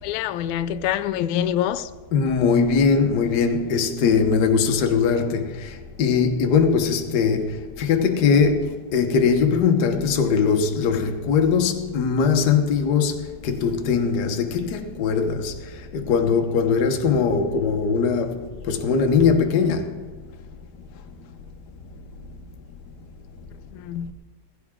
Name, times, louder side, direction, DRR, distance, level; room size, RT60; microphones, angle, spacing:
voice 1, 0.0-1.9 23.7-24.1, left 10 dB, 85° left, 2.0 m, -25 dB
voice 2, 2.1-5.5 6.0-7.5 7.8-13.1 13.4-15.5 15.9-19.9, left 5 dB, 60° left, 1.0 m, -20 dB
16.5 x 15.5 x 3.6 m
omnidirectional pair, 3.3 m